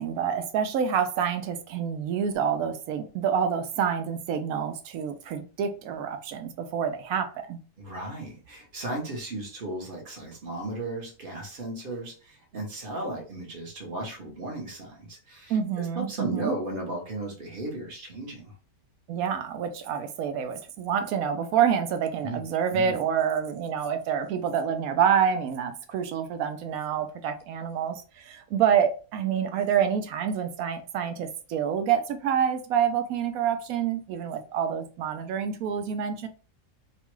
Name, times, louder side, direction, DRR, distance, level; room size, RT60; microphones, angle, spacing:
voice 1, 0.0-7.6 15.5-16.5 19.1-36.3, right 8 dB, 75° right, 1.0 m, -27 dB
voice 2, 7.8-18.5 22.2-22.4 22.7-23.0, right 2 dB, 40° right, 0.9 m, -35 dB
3.0 x 2.3 x 3.0 m
omnidirectional pair, 1.6 m